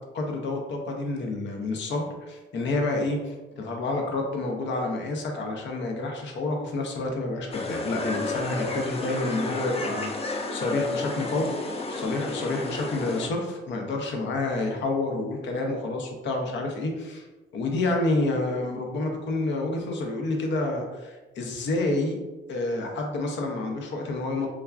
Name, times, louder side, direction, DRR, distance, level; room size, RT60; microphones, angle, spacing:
voice 1, 0.1-17.3 17.5-22.2 22.5-24.5, left 2 dB, 65° left, 2 dB, 0.6 m, -29 dB
sound 1, 7.5-13.3, left 3 dB, 30° left, 0.4 m, -32 dB
3.4 x 2.3 x 2.3 m, 1.1 s
cardioid pair, 90°, 20 cm